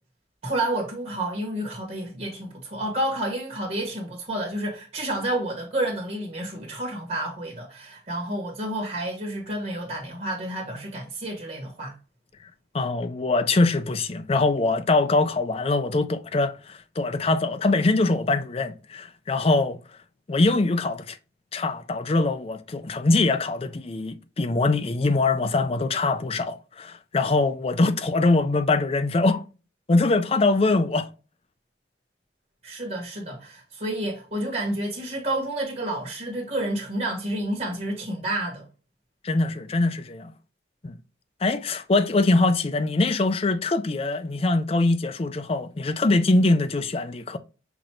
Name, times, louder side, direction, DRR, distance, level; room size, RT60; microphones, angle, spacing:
voice 1, 0.4-12.0 32.6-38.7, right 1 dB, 45° right, 1.4 m, -30 dB
voice 2, 12.7-19.8 20.3-21.2 21.5-29.4 29.9-31.1 39.2-40.3 40.8-41.0 41.4-47.4, left 2 dB, 35° left, 0.5 m, -23 dB
5.9 x 2.6 x 2.9 m
head